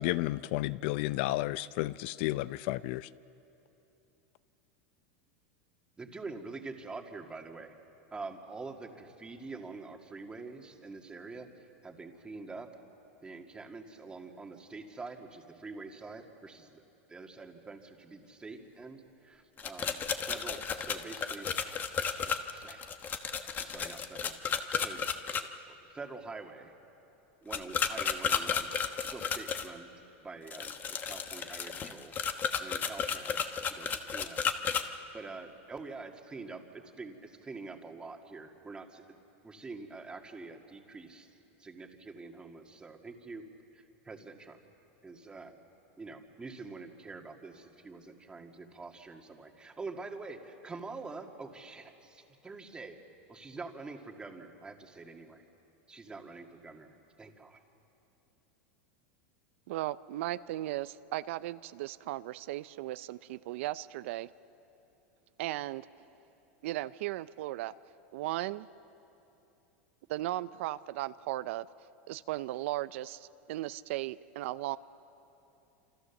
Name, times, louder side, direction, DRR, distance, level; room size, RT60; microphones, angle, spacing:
voice 1, 0.0-3.1, left 17 dB, 60° left, 17 dB, 0.5 m, -32 dB
voice 2, 6.0-7.7 8.1-12.7 13.2-16.8 17.1-20.0 20.2-22.9 23.6-25.0 25.9-26.7 27.4-28.7 29.0-29.9 30.2-30.8 31.0-32.1 32.6-34.4 35.1-39.2 39.4-41.3 41.6-43.4 43.7-44.6 45.0-45.6 46.0-53.0 53.3-55.4 55.9-57.6, right 3 dB, 10° right, 3 dB, 2.0 m, -46 dB
sound 1, 19.6-25.4 27.5-29.7 30.5-34.8, left 7 dB, 25° left, 1.2 m, -33 dB
voice 3, 59.7-64.3 65.4-65.9 66.6-67.7 68.1-68.7 70.1-71.7 72.1-74.8, right 16 dB, 70° right, 15 dB, 0.5 m, -36 dB
27.5 x 27.0 x 7.2 m, 2.9 s
supercardioid pair, 140°, 7 cm